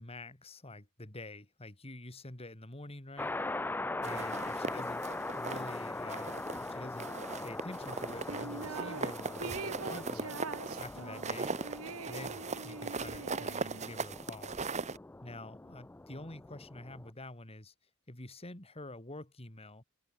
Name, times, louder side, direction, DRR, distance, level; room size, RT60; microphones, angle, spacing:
voice 1, 0.0-3.4 4.0-5.0 5.3-10.4 10.8-11.6 12.1-14.6 15.2-17.7 18.1-19.8, left 2 dB, 30° left, 2.9 m, -47 dB
sound 1, 3.2-17.1, left 2 dB, 10° left, 0.3 m, -41 dB
sound 2, 4.0-5.8 6.1-6.7 7.0-15.0, right 4 dB, 35° right, 1.0 m, -39 dB
sound 3, 8.3-9.1 9.4-14.0, right 4 dB, 90° right, 1.3 m, -44 dB
head